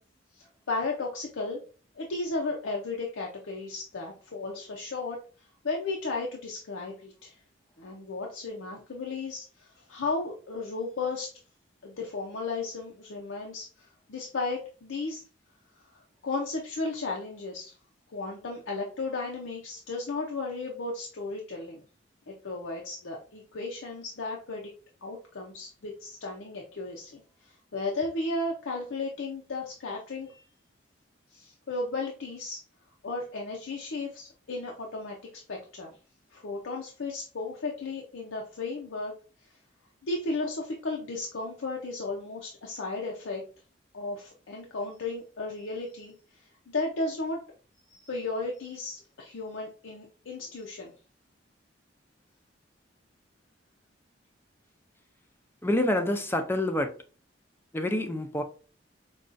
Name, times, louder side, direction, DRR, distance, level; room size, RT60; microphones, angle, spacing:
voice 1, 0.3-1.6 2.0-7.4 7.8-11.3 11.8-15.2 15.9-17.7 18.1-21.8 22.3-24.7 25.0-30.4 31.3-32.6 33.0-35.2 35.5-35.9 36.3-39.1 40.0-43.4 43.9-47.4 47.9-50.9, left 3 dB, 85° left, 0.6 m, -34 dB
voice 2, 55.6-56.9 57.7-58.4, left 1 dB, 10° left, 0.4 m, -27 dB
5.1 x 2.3 x 2.5 m
head